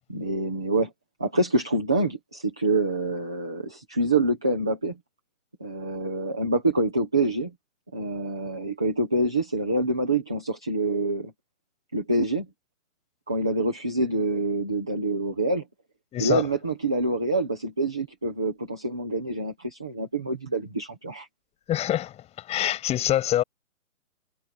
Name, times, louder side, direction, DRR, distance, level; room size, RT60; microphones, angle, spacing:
voice 1, 0.1-0.9 1.2-5.0 5.6-7.5 7.9-11.3 11.9-12.5 13.3-15.7 16.2-21.3, right 2 dB, 5° right, 0.5 m, -26 dB
voice 2, 16.1-16.4 21.7-22.2 22.5-23.4, left 12 dB, 15° left, 7.0 m, -25 dB
hypercardioid pair, 150°, 43 cm